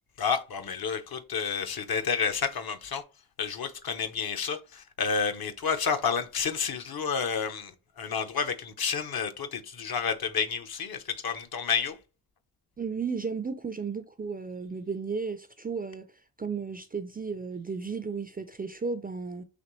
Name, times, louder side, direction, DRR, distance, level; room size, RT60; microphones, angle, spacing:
voice 1, 0.2-3.0 3.4-7.7 8.0-11.9, left 6 dB, 55° left, 0.7 m, -30 dB
voice 2, 12.8-16.1 16.4-19.4, right 5 dB, 20° right, 0.4 m, -34 dB
4.1 x 2.9 x 3.0 m
cardioid pair, 60°, 43 cm